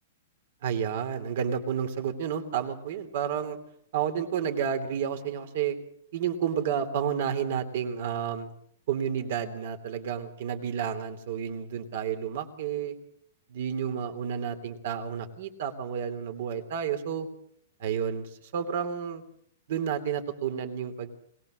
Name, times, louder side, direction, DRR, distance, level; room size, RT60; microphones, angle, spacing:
voice 1, 0.6-3.6 3.9-5.8 6.1-8.5 8.9-12.9 13.5-17.3 17.8-19.2 19.7-21.2, right 8 dB, 55° right, 7 dB, 3.2 m, -31 dB
22.0 x 19.0 x 6.5 m, 0.67 s
hypercardioid pair, 165°, 0 cm